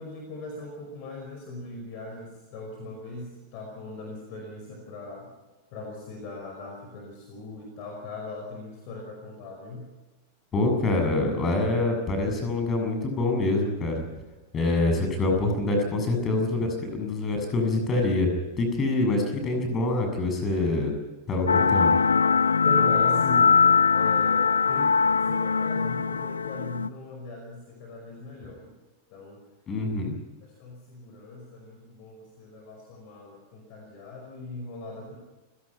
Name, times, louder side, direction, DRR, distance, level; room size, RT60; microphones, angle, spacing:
voice 1, 0.0-5.3 5.7-9.9 22.6-23.5 23.9-28.7 29.1-29.4 30.4-35.2, left 2 dB, 45° left, 2 dB, 5.3 m, -39 dB
voice 2, 10.5-14.0 14.5-18.3 18.6-20.9 21.3-21.9 29.7-30.1, left 2 dB, 25° left, 4 dB, 7.3 m, -25 dB
sound 1, 21.5-26.9, left 5 dB, 75° left, 0.6 m, -21 dB
29.5 x 17.0 x 5.8 m, 1.2 s
figure-of-eight pair, 90°, 0 cm